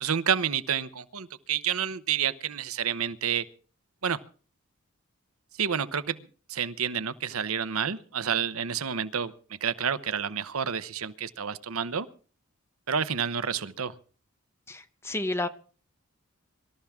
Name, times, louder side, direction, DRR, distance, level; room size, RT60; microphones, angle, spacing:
voice 1, 0.0-3.5 4.0-4.2 5.6-12.1 12.9-13.9, right 7 dB, 90° right, 14 dB, 0.9 m, -29 dB
voice 2, 14.7-15.5, left 2 dB, 10° left, 10 dB, 0.9 m, -31 dB
24.5 x 13.0 x 3.6 m, 0.40 s
head